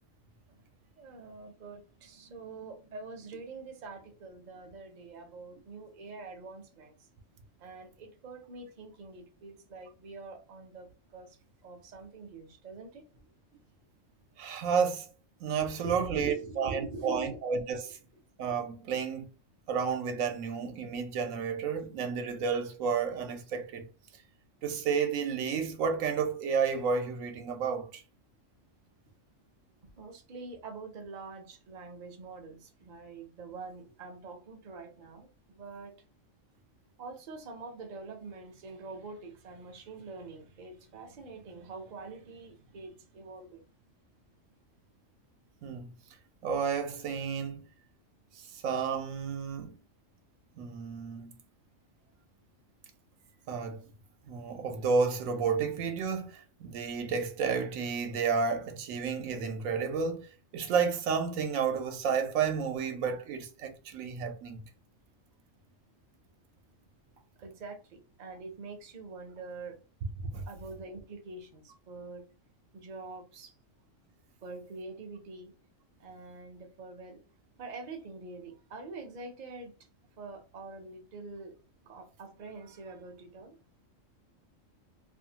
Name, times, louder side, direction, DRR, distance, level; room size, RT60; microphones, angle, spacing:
voice 1, 1.0-6.9 7.6-13.2 15.8-17.4 30.0-35.9 37.0-43.7 67.4-69.8 70.5-72.2 72.7-73.5 74.4-75.5 76.0-77.2 77.6-79.7 80.2-81.5 81.9-83.6, right 3 dB, 45° right, 0.6 m, -45 dB
voice 2, 14.4-15.1 15.4-18.0 18.4-19.3 19.7-23.9 24.6-28.0 45.6-45.9 46.4-47.6 48.6-49.7 50.6-51.3 53.5-53.8 54.3-60.3 60.5-64.6 70.3-70.4, right 6 dB, 85° right, 1.0 m, -31 dB
2.6 x 2.4 x 2.7 m
omnidirectional pair, 1.3 m